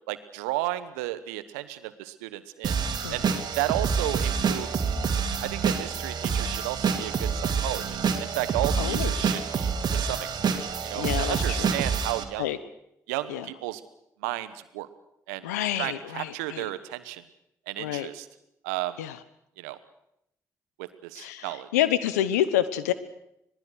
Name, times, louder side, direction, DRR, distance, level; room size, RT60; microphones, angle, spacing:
voice 1, 0.1-2.8 3.1-3.3 3.6-4.8 5.4-10.5 10.8-12.5 13.1-13.8 14.2-14.9 15.3-15.5 15.7-17.2 17.7-18.3 18.6-19.0 19.6-19.8 20.8-21.7, right 16 dB, 85° right, 13 dB, 1.1 m, -33 dB
sound 1, 2.6-12.2, right 6 dB, 55° right, 2.5 m, -27 dB
voice 2, 3.0-3.4 8.8-9.1 11.0-11.7 12.4-12.6 13.3-13.5 15.4-16.7 17.8-18.1 19.0-19.2 21.2-22.9, left 12 dB, 90° left, 15 dB, 1.0 m, -28 dB
25.5 x 19.0 x 6.4 m, 0.80 s
hypercardioid pair, 45°, 8 cm